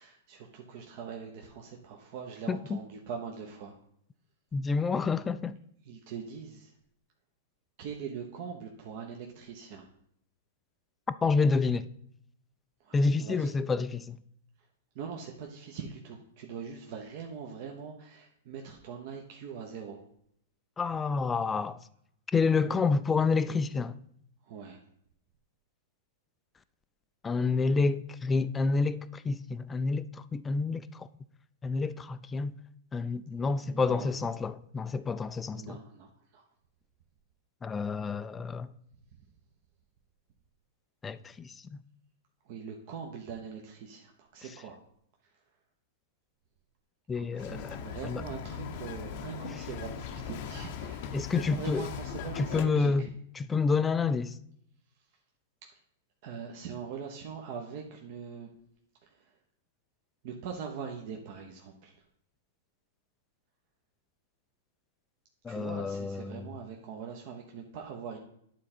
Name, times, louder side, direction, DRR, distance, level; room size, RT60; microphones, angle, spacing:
voice 1, 0.0-3.7 5.8-6.7 7.8-9.9 12.8-13.5 14.9-20.0 24.4-24.8 33.6-34.1 35.5-36.4 42.4-44.8 47.1-53.1 56.2-58.5 59.0-59.3 60.2-61.9 65.5-68.2, right 6 dB, 55° right, 0.9 m, -42 dB
voice 2, 2.5-2.8 4.5-5.5 11.2-11.9 12.9-14.2 20.8-21.8 22.3-24.0 27.2-31.1 31.6-32.5 32.9-35.8 37.6-38.7 41.0-41.8 47.1-48.2 51.1-51.9 52.4-53.1 53.4-54.3 65.4-66.5, left 4 dB, 15° left, 0.4 m, -29 dB
Bird vocalization bird call bird song, 47.4-52.7, left 7 dB, 55° left, 0.7 m, -39 dB
9.4 x 3.8 x 4.4 m
hypercardioid pair, 115°, 0 cm